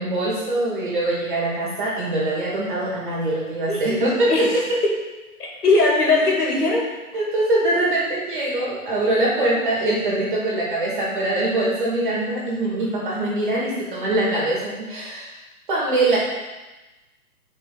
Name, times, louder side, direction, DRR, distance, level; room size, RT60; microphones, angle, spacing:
voice 1, 0.0-4.6 7.1-15.3 15.7-16.2, right 2 dB, 35° right, -5 dB, 2.5 m, -23 dB
voice 2, 3.7-4.0 4.3-4.9 5.6-6.9, left 3 dB, 90° left, -2 dB, 2.6 m, -20 dB
8.6 x 5.0 x 4.2 m, 1.1 s
hypercardioid pair, 180°, 45 cm